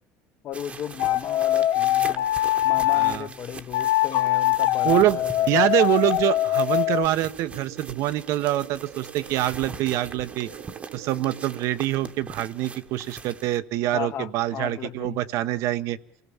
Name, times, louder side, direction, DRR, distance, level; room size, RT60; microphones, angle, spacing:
voice 1, 0.4-2.3 2.6-5.6 13.9-15.2, left 10 dB, 45° left, 1.1 m, -35 dB
sound 1, 0.5-13.6, right 4 dB, 25° right, 1.2 m, -42 dB
sound 2, 1.0-3.2 3.7-7.1, left 14 dB, 65° left, 0.9 m, -22 dB
voice 2, 2.9-3.3 4.8-5.2 5.5-10.5 10.9-16.0, right 14 dB, 60° right, 1.1 m, -25 dB
sound 3, 6.2-11.6, right 13 dB, 90° right, 2.3 m, -45 dB
28.0 x 17.5 x 7.2 m
cardioid pair, 145°, 6 cm